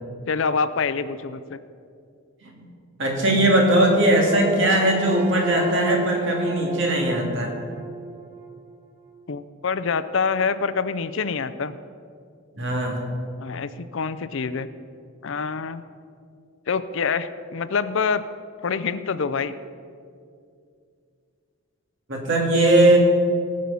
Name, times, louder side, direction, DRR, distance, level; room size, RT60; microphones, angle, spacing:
voice 1, 0.3-1.6 9.3-11.7 13.4-14.7 15.2-15.8 16.7-18.2 18.6-19.5, left 5 dB, 60° left, 13 dB, 0.5 m, -26 dB
voice 2, 3.0-7.6 12.5-13.0 22.1-23.0, right 1 dB, 55° right, 0 dB, 2.4 m, -19 dB
sound 1, 4.2-8.5, right 2 dB, 25° right, 1.5 m, -32 dB
18.0 x 6.4 x 7.0 m, 2.3 s
head